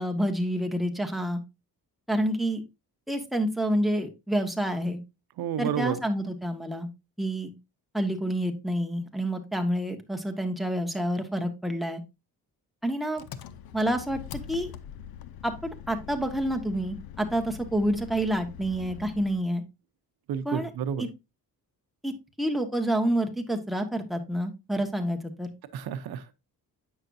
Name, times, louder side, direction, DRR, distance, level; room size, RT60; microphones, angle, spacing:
voice 1, 0.0-1.4 2.1-2.6 3.1-5.0 5.6-6.9 7.2-7.5 7.9-12.0 12.8-13.2 13.7-14.7 15.4-19.6 20.4-20.7 21.0-21.1 22.0-25.5, right 1 dB, ahead, 1.5 m, -28 dB
voice 2, 5.4-6.0 20.3-21.1 25.7-26.3, right 8 dB, 85° right, 0.8 m, -30 dB
Engine, 13.2-19.5, left 9 dB, 75° left, 0.7 m, -43 dB
8.8 x 6.3 x 2.6 m
cardioid pair, 95°, 36 cm